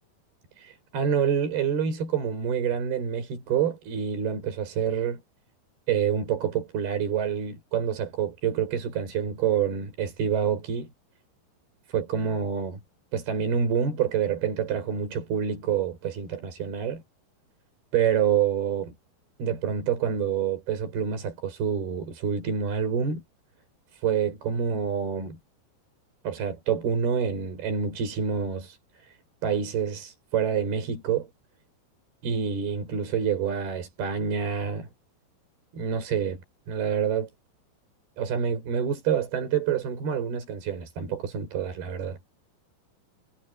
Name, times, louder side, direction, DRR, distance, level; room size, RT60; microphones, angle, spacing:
voice 1, 0.6-5.2 5.9-10.9 11.9-12.8 13.1-17.0 17.9-18.9 19.4-23.2 23.9-25.4 26.2-28.8 29.0-29.1 29.4-31.3 32.2-34.9 35.7-36.4 36.7-37.3 38.2-42.2, right 7 dB, 70° right, 7.2 m, -27 dB
omnidirectional pair, 4.6 m